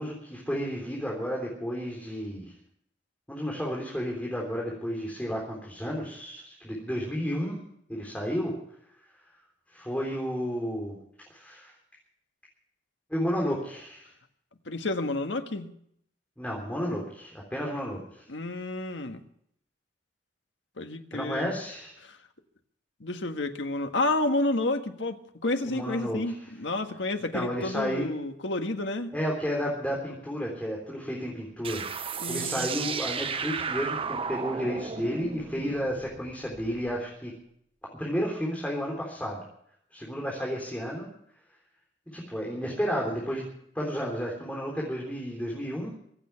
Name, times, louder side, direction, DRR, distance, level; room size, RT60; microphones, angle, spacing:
voice 1, 0.0-2.5 3.3-7.6 7.9-8.5 9.7-11.0 11.3-11.7 13.1-14.1 16.4-18.2 21.1-22.0 25.6-26.2 27.3-28.0 29.1-31.8 32.3-37.3 37.9-39.4 39.9-41.1 42.1-43.5 43.8-45.9, equal, 10° left, 3.6 m, -32 dB
voice 2, 14.6-15.7 18.3-19.2 20.8-21.5 22.0-22.2 23.0-29.1 32.2-32.7, left 2 dB, 90° left, 1.6 m, -30 dB
sound 1, 31.6-36.9, right 5 dB, 30° right, 0.8 m, -34 dB
25.0 x 8.9 x 5.8 m
head